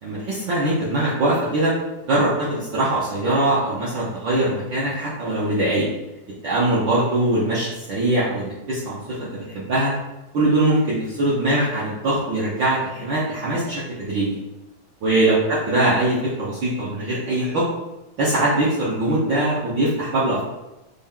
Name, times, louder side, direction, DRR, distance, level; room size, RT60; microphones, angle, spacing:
voice 1, 0.0-1.7 2.0-5.9 6.4-9.9 10.3-14.4 15.0-17.6 18.2-20.4, right 1 dB, 85° right, -8 dB, 1.0 m, -22 dB
6.0 x 2.2 x 3.6 m, 0.97 s
omnidirectional pair, 3.4 m